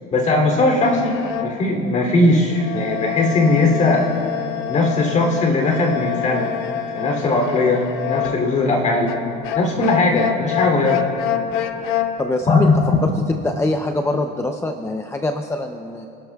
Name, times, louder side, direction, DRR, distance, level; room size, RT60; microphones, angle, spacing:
voice 1, 0.1-1.2 1.4-4.1 4.7-6.5 6.9-9.2 9.5-11.0 12.5-13.0, left 2 dB, 35° left, 1 dB, 3.1 m, -18 dB
sound 1, 0.8-1.7 2.5-8.6 9.1-12.2, left 11 dB, 70° left, 0.9 m, -27 dB
voice 2, 12.2-12.7 13.0-16.1, left 2 dB, 15° left, 4 dB, 0.7 m, -24 dB
29.0 x 12.0 x 2.4 m, 2.8 s
cardioid pair, 120°, 20 cm